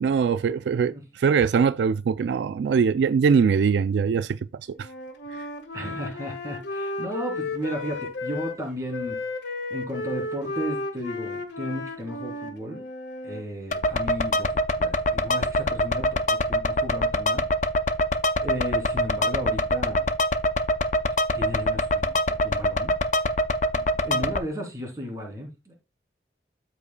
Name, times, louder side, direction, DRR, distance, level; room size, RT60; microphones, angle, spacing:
voice 1, 0.0-4.4 4.8-4.9 5.4-5.5, right 6 dB, 75° right, 0.3 m, -22 dB
Wind instrument woodwind instrument, 4.8-8.6 8.9-13.4, left 2 dB, 85° left, 1.6 m, -33 dB
voice 2, 5.7-9.2 9.7-12.8 13.2-17.4 18.4-20.1 21.3-22.9 24.0-25.8, equal, 20° right, 2.8 m, -34 dB
sound 1, 13.7-24.4, left 1 dB, 40° left, 0.5 m, -24 dB
13.0 x 4.9 x 2.2 m
head